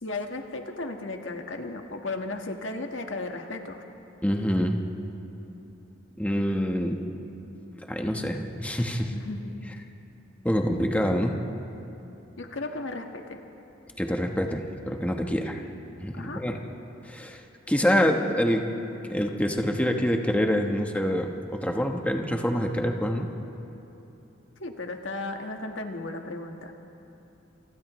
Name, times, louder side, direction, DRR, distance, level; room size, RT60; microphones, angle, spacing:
voice 1, 0.0-3.8 9.1-9.5 12.4-13.4 15.3-15.4 16.1-16.4 24.6-26.7, left 2 dB, 80° left, 3 dB, 1.6 m, -35 dB
voice 2, 4.2-4.8 6.2-7.0 7.9-9.1 10.4-11.4 14.0-15.6 16.0-16.6 17.0-18.7 19.1-23.3, equal, 10° left, 2 dB, 1.2 m, -26 dB
29.0 x 28.0 x 3.2 m, 2.9 s
head